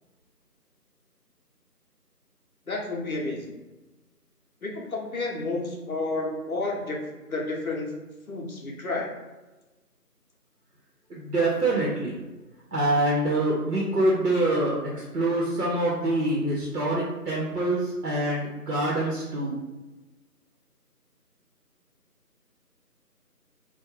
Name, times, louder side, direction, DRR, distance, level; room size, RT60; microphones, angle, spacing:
voice 1, 2.7-3.4 4.6-7.0 7.3-7.9 8.3-9.1, left 2 dB, 60° left, -1 dB, 0.6 m, -30 dB
voice 2, 11.1-12.2 12.7-19.6, right 1 dB, 75° right, -5 dB, 0.8 m, -25 dB
2.3 x 2.1 x 3.1 m, 1.1 s
figure-of-eight pair, 170°, 48 cm